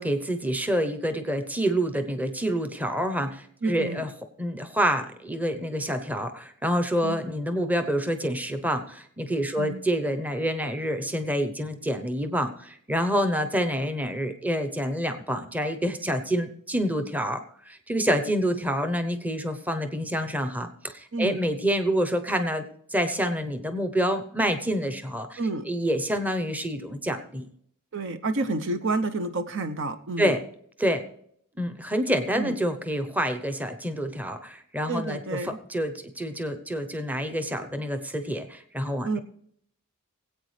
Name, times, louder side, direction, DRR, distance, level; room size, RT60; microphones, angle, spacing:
voice 1, 0.0-4.1 4.4-22.7 22.9-27.5 30.2-30.4 30.8-31.0 31.6-39.2, equal, 5° right, 8 dB, 0.8 m, -27 dB
voice 2, 3.6-4.1 7.0-7.3 9.6-9.8 21.1-21.4 25.4-25.6 27.9-30.3 32.3-32.5 34.9-35.6 39.0-39.2, right 3 dB, 60° right, 10 dB, 0.8 m, -29 dB
20.0 x 8.5 x 3.3 m, 0.65 s
head